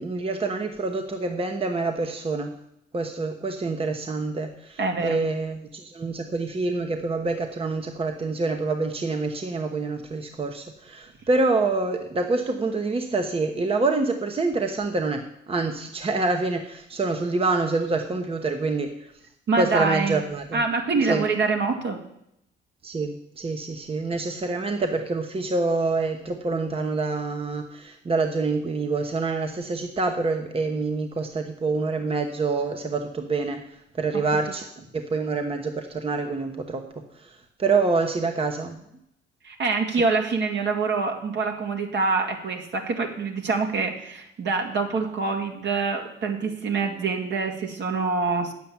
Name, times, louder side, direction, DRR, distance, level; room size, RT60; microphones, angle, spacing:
voice 1, 0.0-2.5 2.9-19.1 19.6-20.6 21.0-21.2 22.8-33.6 34.0-34.6 34.9-36.8 37.1-38.8, right 3 dB, 30° right, 5 dB, 1.0 m, -26 dB
voice 2, 4.8-5.2 19.5-20.2 20.5-22.0 39.4-48.5, right 4 dB, 60° right, 3 dB, 2.1 m, -25 dB
9.2 x 7.5 x 7.2 m, 0.76 s
cardioid pair, 90°, 20 cm